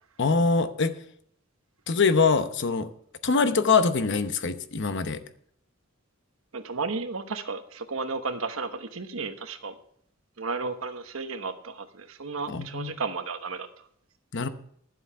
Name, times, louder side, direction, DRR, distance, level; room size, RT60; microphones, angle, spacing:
voice 1, 0.2-0.9 1.9-2.9 3.2-5.2 12.5-13.0 14.3-14.5, left 4 dB, 60° left, 10 dB, 0.9 m, -23 dB
voice 2, 6.5-9.7 10.4-13.7, right 4 dB, 85° right, 8 dB, 1.1 m, -33 dB
12.0 x 7.8 x 5.7 m, 0.65 s
head